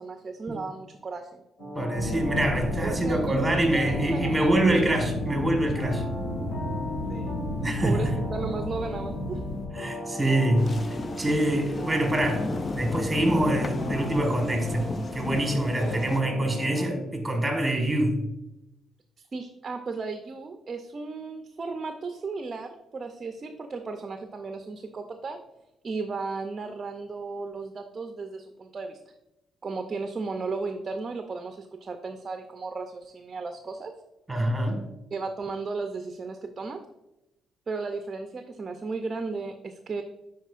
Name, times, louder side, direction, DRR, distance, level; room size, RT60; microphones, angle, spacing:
voice 1, 0.0-1.4 2.8-4.5 7.1-7.4 7.8-9.4 15.7-16.0 19.3-25.4 25.8-29.0 29.6-33.9 35.1-36.8 37.7-40.0, right 4 dB, 35° right, 6 dB, 0.5 m, -35 dB
sound 1, 1.6-16.8, left 1 dB, 55° left, 2.1 m, -37 dB
voice 2, 1.7-6.1 7.6-8.1 9.7-18.2 34.3-34.9, right 1 dB, 15° right, 3 dB, 1.5 m, -25 dB
sound 2, 1.9-9.7, left 1 dB, 85° left, 1.0 m, -33 dB
sound 3, 10.6-16.2, left 3 dB, 35° left, 0.4 m, -34 dB
9.3 x 4.3 x 2.5 m, 0.92 s
cardioid pair, 90°, 0 cm